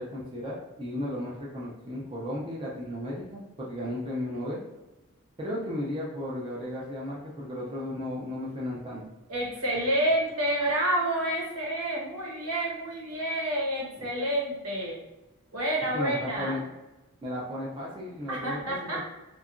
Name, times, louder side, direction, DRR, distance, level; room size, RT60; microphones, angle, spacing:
voice 1, 0.0-4.6 5.4-9.0 14.0-14.1 15.9-16.6 17.2-19.0, left 1 dB, 20° right, -5 dB, 0.4 m, -35 dB
voice 2, 9.3-15.0 15.5-16.5 18.3-19.0, right 1 dB, 80° right, -4 dB, 1.0 m, -29 dB
2.7 x 2.3 x 2.4 m, 1.1 s
head